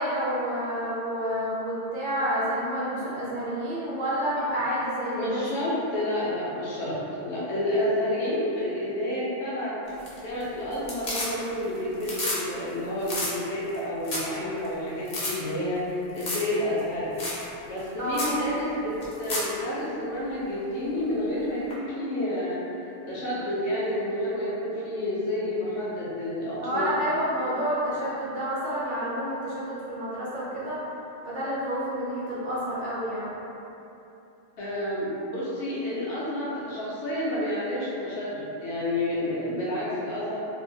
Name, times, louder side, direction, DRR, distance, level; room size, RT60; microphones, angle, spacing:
voice 1, 0.0-5.5 18.0-18.3 26.6-30.8 31.2-33.3, equal, 55° right, -9 dB, 0.6 m, -29 dB
voice 2, 5.1-7.0 7.2-9.7 10.2-17.1 17.6-18.9 19.2-22.6 23.1-26.9 34.6-40.4, left 1 dB, 75° left, -8 dB, 0.9 m, -29 dB
sound 1, 9.9-10.4 10.7-11.6 11.9-12.4 12.7-12.8 13.0-13.3 13.7-13.8 14.0-14.3 14.6-14.7 15.1-15.3 16.2-16.5 16.8-16.9 17.2-17.4 17.8-17.9 18.1-18.4 19.0-19.5 21.7-21.8, left 1 dB, 45° left, 0.6 m, -31 dB
2.7 x 2.1 x 2.6 m, 2.9 s
omnidirectional pair, 1.2 m